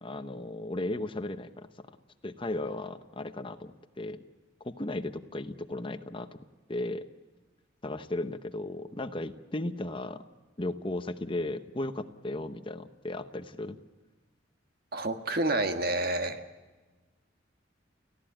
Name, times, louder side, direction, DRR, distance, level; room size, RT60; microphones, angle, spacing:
voice 1, 0.0-1.7 2.2-4.2 4.6-6.4 6.7-7.1 7.8-10.2 10.6-13.8, left 2 dB, 25° left, 10 dB, 0.9 m, -35 dB
voice 2, 14.9-16.4, right 2 dB, 50° right, 7 dB, 1.6 m, -29 dB
29.5 x 16.0 x 8.9 m, 1.3 s
head